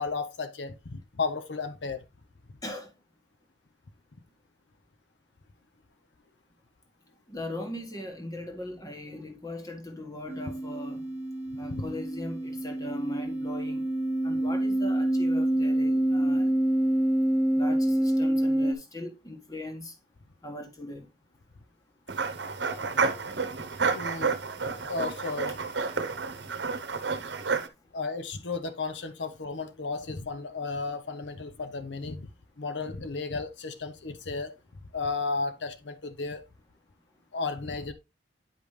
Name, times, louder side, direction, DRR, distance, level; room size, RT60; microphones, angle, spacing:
voice 1, 0.0-2.0 11.7-11.9 23.9-24.4 24.9-25.6 27.9-32.3 32.6-34.5 34.9-36.4 37.3-37.9, left 4 dB, 85° left, 0.8 m, -33 dB
voice 2, 7.3-11.1 11.5-13.9 14.2-16.5 17.5-19.9 20.4-21.1, left 1 dB, 20° left, 1.5 m, -39 dB
sound 1, 10.3-18.7, right 1 dB, 10° right, 0.8 m, -27 dB
sound 2, 22.1-27.7, right 5 dB, 80° right, 0.9 m, -30 dB
9.5 x 5.2 x 3.2 m
head